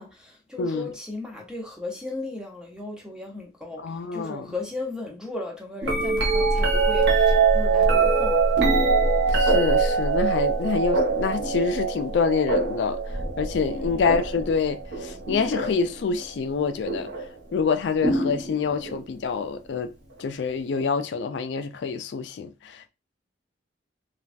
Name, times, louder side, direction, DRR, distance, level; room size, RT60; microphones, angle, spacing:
voice 1, 0.0-8.4 13.7-14.0, left 2 dB, 5° right, 0.9 m, -36 dB
voice 2, 0.6-0.9 3.8-4.5 9.3-13.0 13.4-17.1 17.5-19.9 20.2-22.9, left 5 dB, 75° left, 0.4 m, -26 dB
sound 1, 5.8-15.9 16.9-17.3 18.0-19.0 20.8-20.9, right 4 dB, 80° right, 0.9 m, -23 dB
3.3 x 2.3 x 2.5 m
head